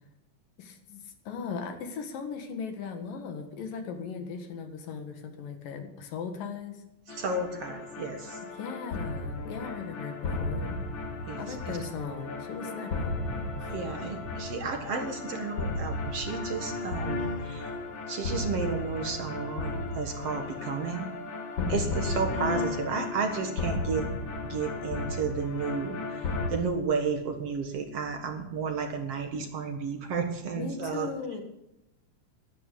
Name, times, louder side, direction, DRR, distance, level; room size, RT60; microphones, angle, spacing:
voice 1, 0.6-6.8 8.5-10.8 11.3-13.2 13.6-13.7 21.6-22.0 30.6-31.4, left 5 dB, 90° left, 6 dB, 3.6 m, -38 dB
sound 1, 7.1-26.5, left 3 dB, 45° left, 2.1 m, -34 dB
voice 2, 7.1-8.4 11.3-11.8 13.7-17.7 18.1-21.1 21.7-24.1 24.4-31.1, right 5 dB, 55° right, 5 dB, 2.4 m, -32 dB
12.5 x 11.5 x 8.4 m, 0.90 s
omnidirectional pair, 3.8 m